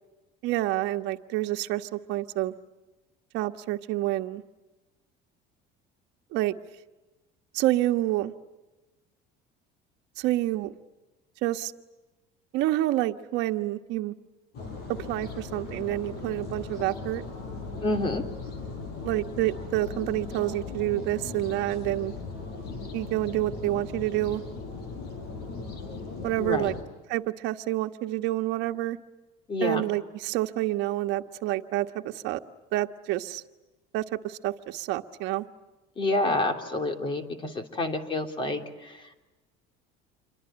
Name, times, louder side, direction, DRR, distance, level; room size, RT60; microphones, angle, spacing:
voice 1, 0.4-2.5 3.3-4.4 6.3-6.5 7.5-8.3 10.2-10.7 11.4-11.7 12.5-14.1 14.9-17.2 19.0-22.1 22.9-24.4 26.2-26.7 27.1-29.0 29.6-32.4 32.7-33.4 33.9-35.4, right 16 dB, 65° right, 6 dB, 1.5 m, -28 dB
sound 1, 14.5-26.8, left 3 dB, 55° left, 6.5 m, -38 dB
voice 2, 17.8-18.2 26.4-26.8 29.5-29.8 36.0-39.1, left 2 dB, 25° left, 6 dB, 3.1 m, -28 dB
28.0 x 24.0 x 8.8 m, 1.1 s
cardioid pair, 160°, 19 cm